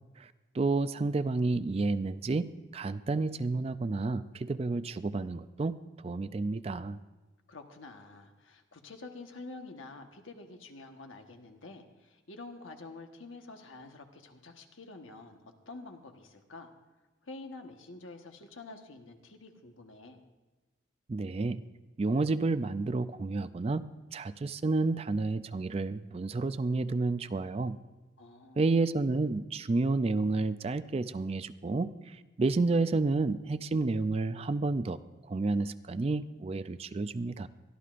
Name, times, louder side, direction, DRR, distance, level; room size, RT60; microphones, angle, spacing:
voice 1, 0.2-5.7 6.0-7.0 21.1-21.6 22.0-23.8 24.1-27.8 28.6-35.0 35.3-37.5, right 3 dB, 30° right, 13 dB, 0.3 m, -30 dB
voice 2, 7.5-15.4 15.7-16.7 17.2-20.2 28.2-29.0, left 3 dB, 85° left, 4 dB, 1.3 m, -48 dB
22.5 x 13.5 x 2.5 m, 1.2 s
head